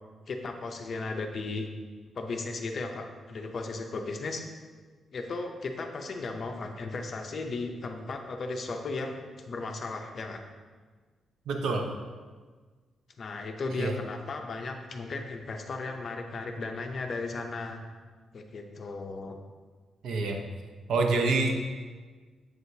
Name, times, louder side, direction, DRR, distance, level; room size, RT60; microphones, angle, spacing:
voice 1, 0.3-1.7 2.2-4.4 5.1-10.4 13.2-17.8 18.3-19.4 21.2-21.4, left 3 dB, 40° left, 4 dB, 0.6 m, -36 dB
voice 2, 11.5-11.9 13.8-13.9 20.0-20.4 20.9-21.7, right 3 dB, 75° right, 3 dB, 0.6 m, -26 dB
7.8 x 6.2 x 2.7 m, 1.5 s
wide cardioid pair, 180°, 0 cm